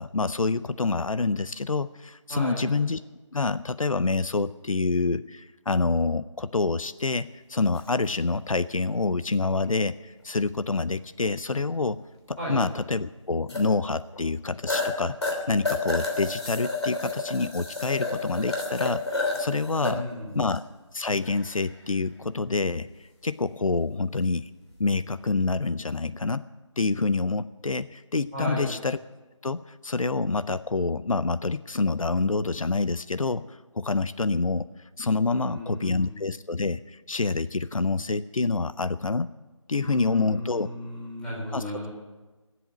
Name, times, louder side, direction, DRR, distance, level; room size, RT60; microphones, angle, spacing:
voice 1, 0.0-3.0 3.3-12.0 12.3-15.2 15.5-20.0 20.3-20.6 20.9-22.9 23.2-24.5 24.8-26.4 26.8-29.0 29.4-34.7 35.0-39.3 39.7-40.7 41.5-41.6, left 3 dB, 85° left, 14 dB, 0.6 m, -27 dB
voice 2, 2.3-2.7 12.4-12.6 19.8-20.4 28.3-28.7 35.2-36.3 39.8-41.9, equal, 5° left, -8 dB, 4.0 m, -34 dB
sound 1, 7.8-7.9 10.4-10.5 13.5-13.6 14.1-14.2 14.7-14.9 15.2-19.9 20.4-20.6 21.2-21.7 25.2-25.4, left 3 dB, 55° left, 3.2 m, -30 dB
17.5 x 7.9 x 8.9 m, 1.2 s
figure-of-eight pair, 165°, 17 cm